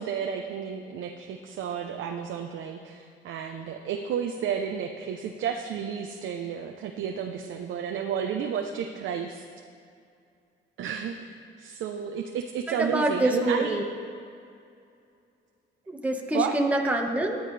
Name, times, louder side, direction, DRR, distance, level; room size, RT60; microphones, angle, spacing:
voice 1, 0.0-9.4 10.8-13.8 16.3-16.5, right 7 dB, 80° right, 3 dB, 0.9 m, -32 dB
voice 2, 12.7-13.8 15.9-17.4, right 1 dB, 5° right, 1 dB, 1.5 m, -26 dB
19.0 x 10.5 x 3.4 m, 2.4 s
cardioid pair, 90°, 20 cm